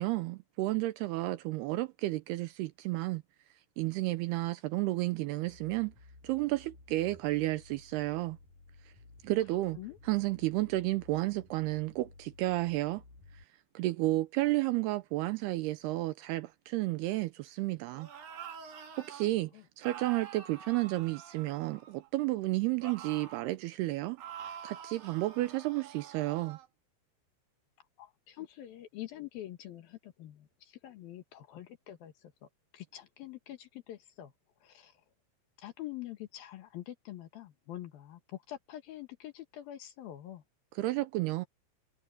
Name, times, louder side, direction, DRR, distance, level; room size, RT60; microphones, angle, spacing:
voice 1, 0.0-3.2 3.8-5.9 6.2-8.4 9.2-9.8 10.1-13.0 13.3-13.4 13.7-18.1 19.0-19.5 19.8-26.6 40.8-41.5, right 18 dB, 80° right, 2.4 m, -32 dB
sound 1, 5.4-13.4, left 3 dB, 50° left, 8.9 m, -57 dB
sound 2, 17.9-19.3 19.8-22.1 22.8-23.5 24.2-26.7, right 8 dB, 55° right, 4.2 m, -47 dB
voice 2, 28.0-32.5 32.7-34.3 34.6-35.0 35.6-40.4, left 13 dB, 65° left, 2.9 m, -45 dB
omnidirectional pair, 5.1 m